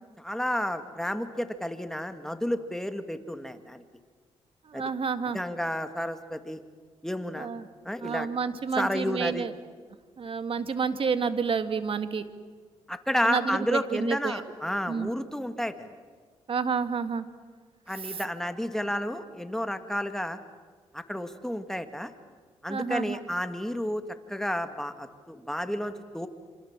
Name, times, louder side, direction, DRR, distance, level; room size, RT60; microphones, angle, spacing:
voice 1, 0.2-3.8 4.7-4.8 5.3-6.6 7.0-7.5 7.8-8.3 8.8-9.5 12.9-15.9 17.9-20.4 20.9-22.1 22.6-24.0 24.3-26.3, equal, 5° left, 8 dB, 2.1 m, -31 dB
voice 2, 4.7-5.4 7.4-7.7 8.0-9.5 10.2-12.3 13.2-14.4 14.9-15.1 16.5-17.3 18.0-18.2 22.7-23.2, right 5 dB, 50° right, 10 dB, 1.9 m, -29 dB
27.0 x 27.0 x 7.5 m, 1.5 s
cardioid pair, 75°, 11 cm